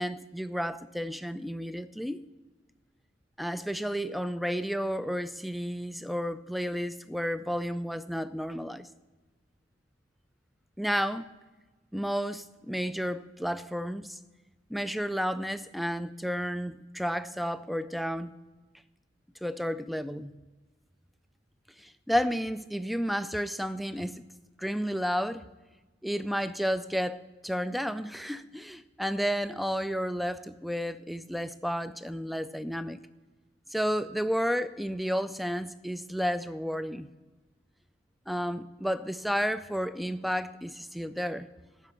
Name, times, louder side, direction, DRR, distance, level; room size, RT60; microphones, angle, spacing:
voice 1, 0.0-2.2 3.4-8.9 10.8-11.3 11.9-14.2 14.7-18.3 19.4-20.3 21.8-24.2 24.6-25.4 26.0-33.0 33.7-37.1 38.3-41.5, equal, ahead, 0.3 m, -32 dB
12.5 x 5.1 x 8.0 m
head